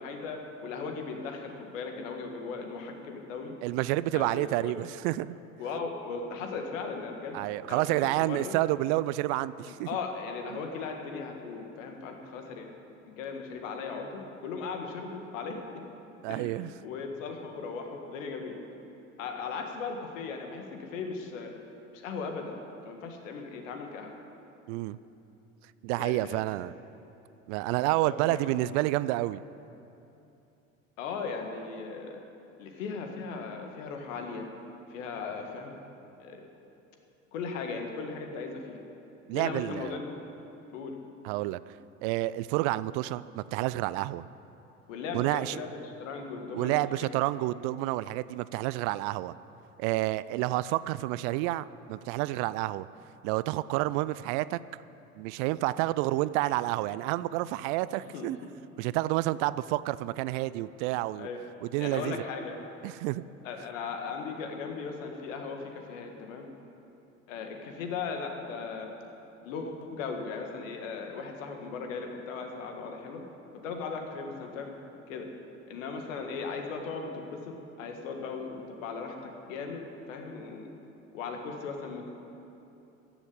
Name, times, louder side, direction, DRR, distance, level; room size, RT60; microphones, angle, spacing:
voice 1, 0.0-3.5 4.1-4.8 5.6-7.4 7.7-7.8 8.2-8.6 9.7-12.7 13.1-15.8 16.3-18.6 19.2-21.6 21.9-24.1 26.0-26.4 28.0-28.6 31.0-32.2 32.6-34.5 34.9-35.8 36.2-36.4 37.3-38.8 39.3-40.2 40.7-41.0 44.9-47.1 58.1-58.3 61.2-61.4 61.8-62.6 63.4-66.5 67.3-68.9 69.4-73.2 73.6-74.7 75.1-75.3 75.7-79.8 80.1-80.7 81.1-82.1, left 5 dB, 70° left, 4 dB, 1.9 m, -37 dB
voice 2, 3.6-5.4 7.3-9.9 10.5-10.6 16.2-16.7 24.7-25.0 25.8-26.7 27.5-29.4 39.3-39.9 41.2-41.7 42.0-44.2 45.1-45.6 46.5-49.4 49.8-52.9 53.2-54.6 55.2-58.4 58.8-61.3 61.7-62.2 62.8-63.2, right 17 dB, 60° right, 17 dB, 0.5 m, -29 dB
14.5 x 7.0 x 9.6 m, 2.9 s
hypercardioid pair, 70°, 40 cm